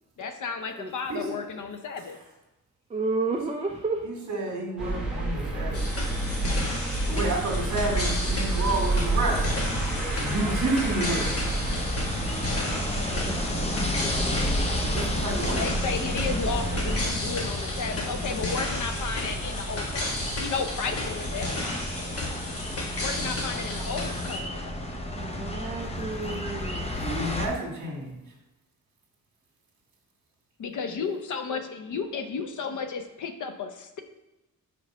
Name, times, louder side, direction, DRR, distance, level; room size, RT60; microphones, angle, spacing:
voice 1, 0.2-2.2 15.5-21.5 23.0-24.9 30.6-34.0, left 5 dB, 65° left, 8 dB, 0.7 m, -33 dB
voice 2, 2.9-4.0 13.1-13.8 22.4-22.6 25.1-26.9, right 3 dB, 20° right, 2 dB, 0.3 m, -32 dB
voice 3, 4.0-5.9 7.1-9.5 10.2-11.4 14.8-15.6 27.0-28.1, right 2 dB, 55° right, 0 dB, 1.8 m, -30 dB
sound 1, 4.8-17.1, right 2 dB, ahead, 1.0 m, -29 dB
sound 2, 5.7-24.4, left 2 dB, 45° left, 1.3 m, -34 dB
sound 3, 9.1-27.5, left 1 dB, 20° left, 0.7 m, -33 dB
5.0 x 4.7 x 5.4 m, 0.99 s
wide cardioid pair, 165°, 33 cm